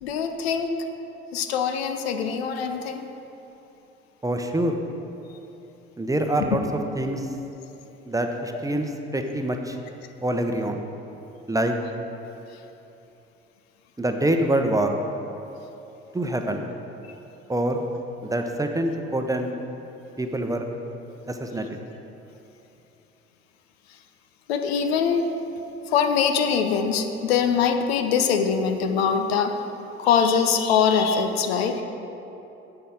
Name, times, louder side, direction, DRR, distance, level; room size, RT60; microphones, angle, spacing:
voice 1, 0.0-0.7 1.3-3.0 24.5-25.3 25.9-29.5 30.0-31.8, left 6 dB, 70° left, 6 dB, 0.7 m, -23 dB
voice 2, 4.2-4.8 6.0-7.3 8.1-9.8 10.2-10.8 11.5-11.8 14.0-14.9 16.1-16.7 17.5-17.8 18.2-19.5 20.2-20.7 21.3-21.8, right 1 dB, 10° right, 4 dB, 0.8 m, -25 dB
11.0 x 7.8 x 3.7 m, 3.0 s
figure-of-eight pair, 55°, 32 cm